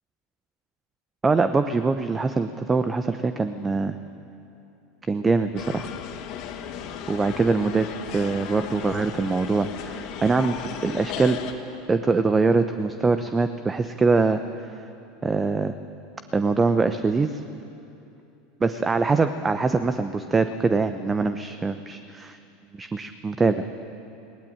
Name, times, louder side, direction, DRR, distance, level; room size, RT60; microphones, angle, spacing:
voice 1, 1.2-3.9 5.1-5.9 7.1-7.9 8.1-10.6 10.8-11.4 11.9-14.4 15.2-15.7 16.3-17.4 18.6-22.4 22.8-23.6, right 4 dB, 20° right, 10 dB, 1.0 m, -23 dB
sound 1, 5.6-11.5, left 9 dB, 55° left, 2.3 m, -36 dB
20.5 x 19.0 x 8.9 m, 2.8 s
hypercardioid pair, 80°, 0 cm